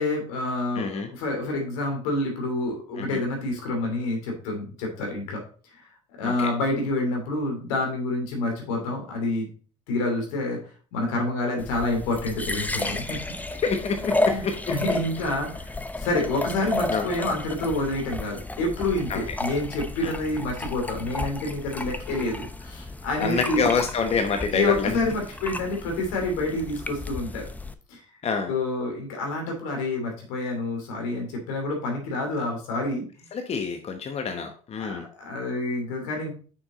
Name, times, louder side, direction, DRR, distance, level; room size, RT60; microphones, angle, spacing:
voice 1, 0.0-5.4 5.7-5.8 6.1-9.5 9.9-10.6 10.9-13.2 14.2-14.5 14.7-23.7 24.5-27.5 27.9-28.0 28.5-33.3 34.8-36.3, left 2 dB, 80° left, 2 dB, 2.8 m, -28 dB
voice 2, 0.8-1.1 3.0-3.2 6.2-6.5 12.8-13.0 13.6-14.6 16.9-17.1 19.1-19.2 20.0-20.1 23.2-24.9 28.2-28.5 33.3-35.0, left 5 dB, 40° left, 6 dB, 1.0 m, -27 dB
sound 1, 11.6-27.7, left 2 dB, 10° left, 0.8 m, -32 dB
6.3 x 6.2 x 4.0 m, 0.41 s
hypercardioid pair, 70°, 17 cm